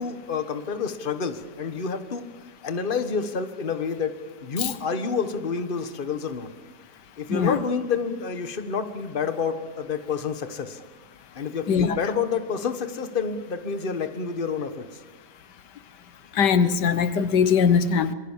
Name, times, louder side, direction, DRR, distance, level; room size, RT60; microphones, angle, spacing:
voice 1, 0.0-2.3 2.6-6.5 7.2-10.8 11.3-14.9, left 5 dB, 35° left, 1.5 m, -29 dB
voice 2, 16.4-18.1, left 6 dB, 85° left, 1.7 m, -20 dB
26.5 x 22.5 x 7.4 m
omnidirectional pair, 1.8 m